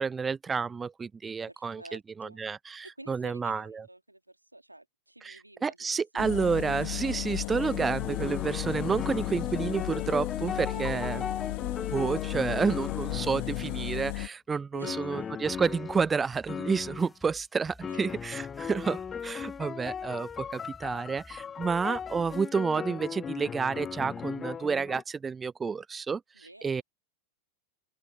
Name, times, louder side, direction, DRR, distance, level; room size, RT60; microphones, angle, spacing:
voice 1, 0.0-3.8 5.2-11.2 11.9-26.8, right 5 dB, 15° right, 0.8 m, -30 dB
voice 2, 1.5-2.5 2.8-6.3 10.7-11.4 14.7-15.4 17.9-18.1 26.3-26.8, right 1 dB, 85° right, 3.2 m, -50 dB
sound 1, 6.2-14.3, left 27 dB, 50° left, 1.9 m, -34 dB
sound 2, 7.6-14.0 14.8-16.2 16.5-17.2 17.8-25.0, left 7 dB, 20° left, 1.7 m, -37 dB
sound 3, 15.4-22.5, left 1 dB, 5° left, 4.9 m, -54 dB
open air
figure-of-eight pair, 90°, 0 cm